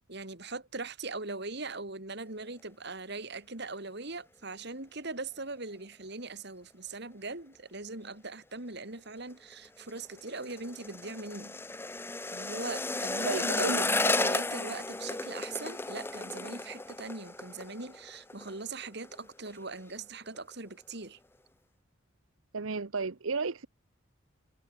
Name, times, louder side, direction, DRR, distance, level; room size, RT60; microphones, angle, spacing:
voice 1, 0.1-11.6 12.3-21.2, right 3 dB, 55° right, 3.3 m, -40 dB
sound 1, 9.5-18.6 18.8-19.2 19.5-20.0 20.4-20.5, left 2 dB, 10° left, 0.7 m, -33 dB
voice 2, 13.3-13.9 22.5-23.7, right 4 dB, 80° right, 0.9 m, -32 dB
head